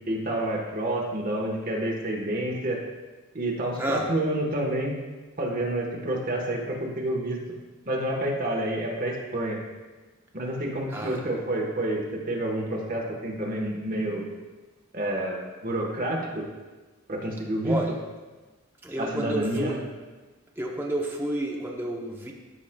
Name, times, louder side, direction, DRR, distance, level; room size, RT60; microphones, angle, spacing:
voice 1, 0.1-2.8 3.3-4.9 5.4-7.4 7.8-9.6 10.3-14.3 14.9-16.5 17.1-17.8 19.0-19.8, right 1 dB, 40° right, -1 dB, 1.2 m, -29 dB
voice 2, 3.8-4.1 10.9-11.2 17.6-17.9 18.8-19.8 20.6-22.3, right 1 dB, 10° right, -1 dB, 0.7 m, -30 dB
13.0 x 4.9 x 2.2 m, 1.3 s
head